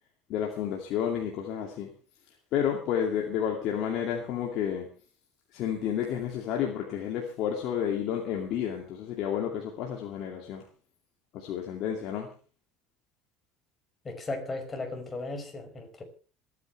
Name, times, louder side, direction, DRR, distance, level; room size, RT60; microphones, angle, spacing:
voice 1, 0.3-1.9 2.5-4.9 5.5-10.6 11.3-12.3, left 9 dB, 60° left, 2.5 m, -31 dB
voice 2, 14.0-16.0, left 2 dB, 25° left, 5.6 m, -36 dB
27.0 x 10.0 x 3.4 m
hypercardioid pair, 75°, 0 cm